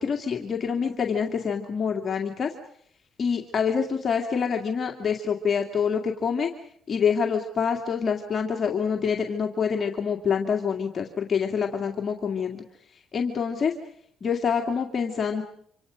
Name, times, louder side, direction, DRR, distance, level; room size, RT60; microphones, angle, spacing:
voice 1, 0.0-2.5 3.2-6.5 6.9-12.6 13.1-13.7 14.2-15.4, left 6 dB, 45° left, 2 dB, 2.2 m, -26 dB
27.5 x 26.5 x 5.1 m, 0.65 s
cardioid pair, 90°, 0 cm